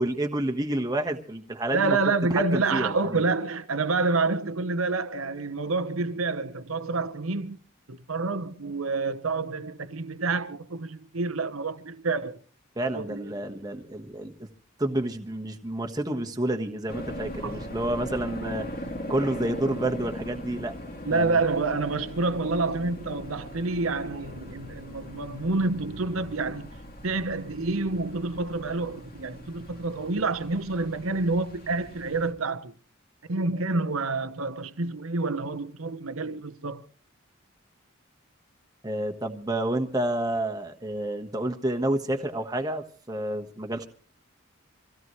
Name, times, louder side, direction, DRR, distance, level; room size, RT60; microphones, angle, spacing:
voice 1, 0.0-2.0 2.5-3.2 12.8-14.5 14.8-18.7 19.1-20.7 21.1-21.4 38.8-43.9, right 1 dB, 20° right, 1.3 m, -29 dB
voice 2, 1.7-7.6 7.9-12.4 12.9-13.3 17.4-17.6 21.0-26.7 27.0-32.7 33.3-36.9, right 3 dB, 85° right, 1.0 m, -28 dB
sound 1, 16.9-32.3, equal, 45° left, 2.4 m, -40 dB
25.0 x 16.5 x 3.2 m
head